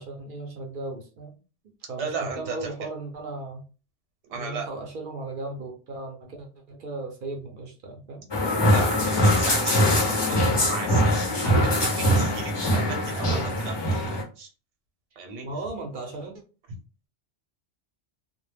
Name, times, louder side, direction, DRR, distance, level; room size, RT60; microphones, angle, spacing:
voice 1, 0.0-1.4 1.6-3.6 4.3-8.2 15.4-16.4, right 2 dB, 60° right, 3 dB, 0.6 m, -36 dB
voice 2, 2.0-2.7 4.3-4.7 8.6-13.8 14.1-14.5 15.2-15.5, right 4 dB, 75° right, 3 dB, 1.0 m, -35 dB
sound 1, 8.3-14.2, equal, 35° left, 0.4 m, -22 dB
2.1 x 2.0 x 3.3 m, 0.35 s
omnidirectional pair, 1.2 m